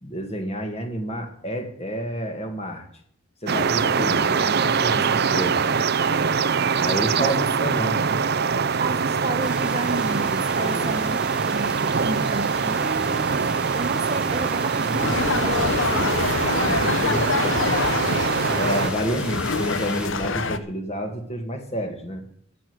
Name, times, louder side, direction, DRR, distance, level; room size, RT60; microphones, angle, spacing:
voice 1, 0.0-2.9 3.4-5.6 6.8-8.0 10.5-11.0 14.7-15.3 16.6-17.8 18.6-22.2, equal, 30° left, 2.0 m, -29 dB
sound 1, 3.5-18.9, right 5 dB, 50° right, 0.5 m, -23 dB
voice 2, 4.0-5.7 7.2-8.0 8.8-11.2 11.4-13.4 13.7-16.4, right 2 dB, 30° right, 1.1 m, -33 dB
sound 2, 9.4-20.1, right 1 dB, 5° right, 0.9 m, -37 dB
sound 3, 15.0-20.6, left 4 dB, 60° left, 0.9 m, -25 dB
14.0 x 6.4 x 9.5 m
head